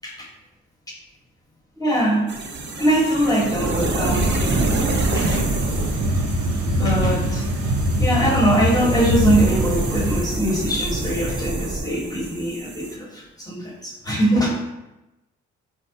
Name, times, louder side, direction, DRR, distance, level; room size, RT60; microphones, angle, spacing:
voice 1, 1.8-2.2 2.8-4.5 5.2-5.4 6.7-7.4 8.0-14.5, right 1 dB, 10° left, -3 dB, 1.1 m, -22 dB
sound 1, 2.3-12.9, right 2 dB, 35° right, 0.5 m, -27 dB
sound 2, 4.1-10.2, equal, 80° right, 0.6 m, -23 dB
4.0 x 2.1 x 2.6 m, 0.97 s
supercardioid pair, 50°, 32 cm